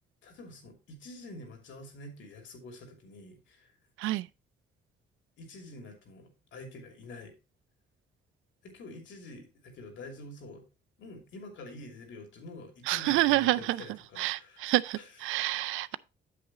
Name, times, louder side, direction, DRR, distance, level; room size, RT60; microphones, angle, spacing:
voice 1, 0.2-3.7 5.4-7.3 8.6-10.6 11.0-14.7 14.9-15.2 15.9-16.0, left 2 dB, 70° left, 2.7 m, -47 dB
voice 2, 12.9-13.8 14.2-16.0, right 17 dB, 90° right, 0.4 m, -28 dB
8.6 x 7.4 x 2.9 m
cardioid pair, 90°, 20 cm